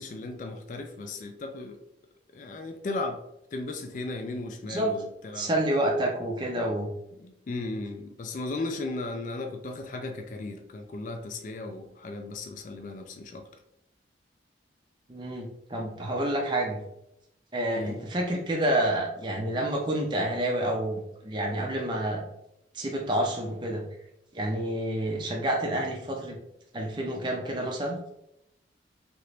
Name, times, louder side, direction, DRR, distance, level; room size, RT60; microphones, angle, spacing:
voice 1, 0.0-1.8 2.3-3.2 3.5-5.5 7.2-13.5 17.8-18.0, left 2 dB, 45° left, 5 dB, 0.3 m, -36 dB
voice 2, 5.3-6.9 15.1-16.8 17.5-22.2 22.7-23.8 24.3-26.4 26.7-28.0, right 1 dB, 25° right, 0 dB, 0.5 m, -28 dB
2.9 x 2.5 x 3.2 m, 0.80 s
head